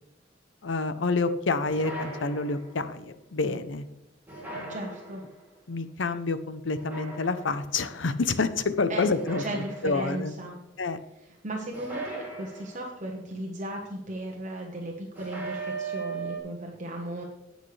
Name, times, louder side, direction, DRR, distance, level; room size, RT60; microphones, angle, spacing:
voice 1, 0.6-3.9 4.5-4.8 5.7-9.4 9.8-10.3 10.8-11.0, left 3 dB, 80° left, 11 dB, 0.7 m, -28 dB
sound 1, 1.7-2.9 4.3-5.4 6.7-7.7 9.1-10.3 11.7-13.1 15.2-16.4, right 3 dB, 10° right, 3.6 m, -38 dB
voice 2, 4.7-5.2 8.9-9.1 9.4-10.6 11.2-17.2, right 1 dB, 40° right, 0 dB, 1.2 m, -36 dB
19.0 x 6.5 x 3.3 m, 0.91 s
head